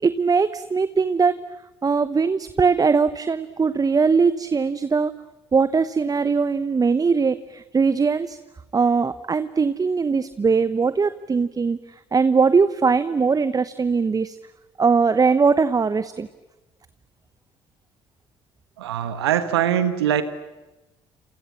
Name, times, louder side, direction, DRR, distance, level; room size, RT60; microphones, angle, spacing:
voice 1, 0.0-1.4 1.8-5.1 5.5-8.4 8.7-11.8 12.1-14.4 14.8-16.3, right 5 dB, 30° right, 14 dB, 1.0 m, -20 dB
voice 2, 18.8-20.2, right 10 dB, 80° right, 11 dB, 1.7 m, -22 dB
29.0 x 27.5 x 7.4 m, 1.1 s
hypercardioid pair, 50°, 13 cm